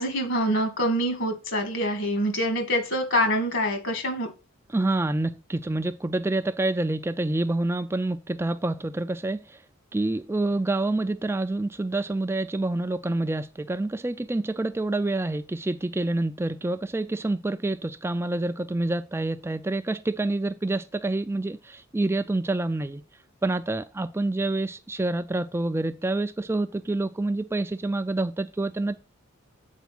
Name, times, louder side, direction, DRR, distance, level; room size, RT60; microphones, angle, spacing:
voice 1, 0.0-4.3, equal, 65° left, 2.3 m, -25 dB
voice 2, 4.7-9.6 9.9-23.0 23.4-29.0, right 2 dB, 10° right, 0.3 m, -27 dB
8.2 x 4.7 x 6.0 m
head